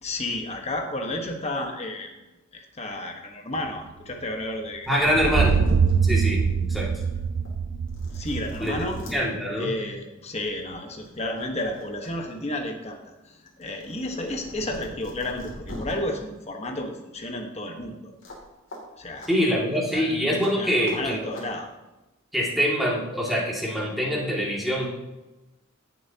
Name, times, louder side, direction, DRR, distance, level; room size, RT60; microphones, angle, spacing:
voice 1, 0.0-2.1 2.5-5.4 8.1-9.0 9.6-13.0 13.2-18.1 19.0-19.3 19.9-20.2 20.6-21.7, left 1 dB, 30° left, 3 dB, 1.3 m, -32 dB
sound 1, 4.6-4.7 4.8-6.0 6.5-6.6 7.4-7.5 7.9-9.2 10.4-10.6 11.0-12.1 12.4-15.9 18.2-18.4 18.7-18.8 19.2-19.3 20.4-20.5 20.8-21.0 21.3-21.5, left 1 dB, 60° left, 2.7 m, -42 dB
voice 2, 4.9-5.6 6.0-6.4 6.7-6.9 8.6-9.7 19.3-21.2 22.3-24.9, equal, ahead, -5 dB, 2.3 m, -24 dB
sound 2, 5.1-9.0, right 5 dB, 55° right, 0.4 m, -24 dB
16.0 x 7.1 x 2.9 m, 1.0 s
head